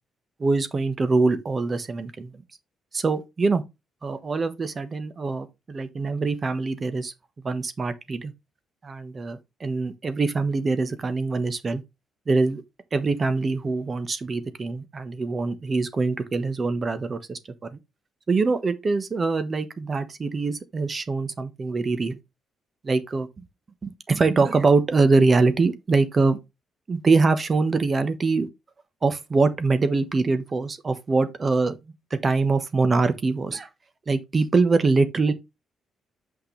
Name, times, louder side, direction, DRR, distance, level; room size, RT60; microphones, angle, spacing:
voice 1, 0.4-2.3 2.9-3.6 4.0-7.1 7.4-8.3 8.8-11.8 12.3-12.6 12.9-17.4 18.3-22.2 22.8-23.3 23.8-26.4 26.9-28.5 29.0-31.8 32.1-33.7 34.1-35.3, right 3 dB, 35° right, 1.2 m, -23 dB
6.0 x 5.9 x 3.3 m
cardioid pair, 90°, 0 cm